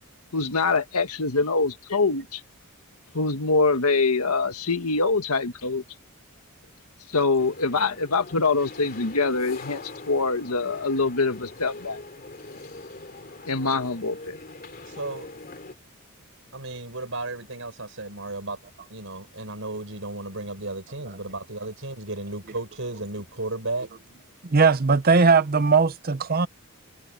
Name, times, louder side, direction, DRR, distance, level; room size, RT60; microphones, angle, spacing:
voice 1, 0.3-2.4 3.1-5.8 7.1-12.0 13.5-14.4, left 3 dB, 85° left, 1.7 m, -24 dB
sound 1, 7.4-15.8, left 2 dB, 40° left, 2.8 m, -42 dB
voice 2, 14.8-15.3 16.5-18.6 18.9-23.9, right 2 dB, 60° right, 5.9 m, -34 dB
voice 3, 24.4-26.5, right 4 dB, 40° right, 0.7 m, -19 dB
head